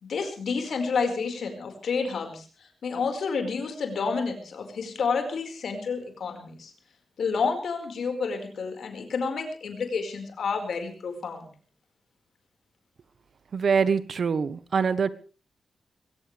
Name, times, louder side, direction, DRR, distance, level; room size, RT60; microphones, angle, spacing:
voice 1, 0.0-2.4 2.8-6.7 7.2-11.5, left 5 dB, 75° left, 5 dB, 5.0 m, -29 dB
voice 2, 13.5-15.1, right 6 dB, 55° right, 15 dB, 1.2 m, -24 dB
22.0 x 17.5 x 3.4 m, 0.38 s
wide cardioid pair, 150°, 0 cm